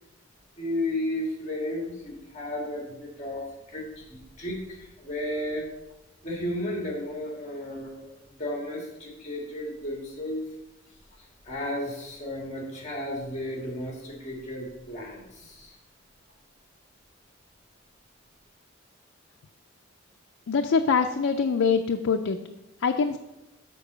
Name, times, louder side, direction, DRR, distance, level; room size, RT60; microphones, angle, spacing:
voice 1, 0.6-3.4 3.7-5.6 6.2-10.4 11.5-15.7, left 1 dB, 35° left, -1 dB, 1.8 m, -33 dB
voice 2, 20.5-22.4 22.8-23.2, left 5 dB, 75° left, 5 dB, 0.4 m, -24 dB
6.9 x 4.6 x 6.7 m, 0.95 s
head